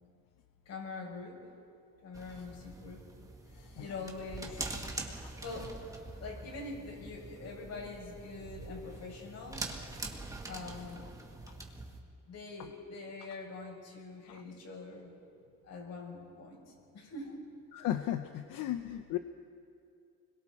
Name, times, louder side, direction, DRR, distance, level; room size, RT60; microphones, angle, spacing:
voice 1, 0.6-1.4 2.0-3.0 3.8-5.0 5.4-5.7 6.2-9.7 10.4-11.1 12.3-15.1 15.6-17.3, left 3 dB, 55° left, -1 dB, 6.6 m, -44 dB
sound 1, 2.1-12.0, right 2 dB, 10° right, 1.8 m, -44 dB
voice 2, 3.5-3.8 5.2-5.3 14.2-14.4 17.7-19.2, left 12 dB, 80° left, 8 dB, 0.9 m, -36 dB
30.0 x 22.0 x 4.3 m, 2.4 s
cardioid pair, 150°, 32 cm